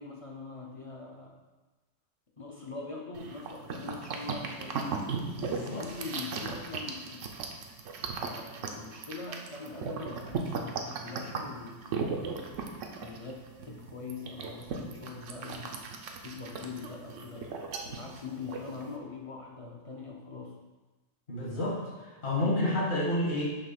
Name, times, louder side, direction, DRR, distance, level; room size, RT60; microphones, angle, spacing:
voice 1, 0.0-1.4 2.4-4.8 5.5-7.3 8.2-12.3 12.9-15.9 16.2-20.6, left 4 dB, 40° left, -2 dB, 0.5 m, -43 dB
sound 1, 3.1-19.0, right 4 dB, 85° right, 1.0 m, -37 dB
voice 2, 5.4-5.8 21.3-23.4, left 1 dB, 60° left, -5 dB, 2.0 m, -30 dB
5.4 x 3.2 x 5.6 m, 1.2 s
omnidirectional pair, 1.2 m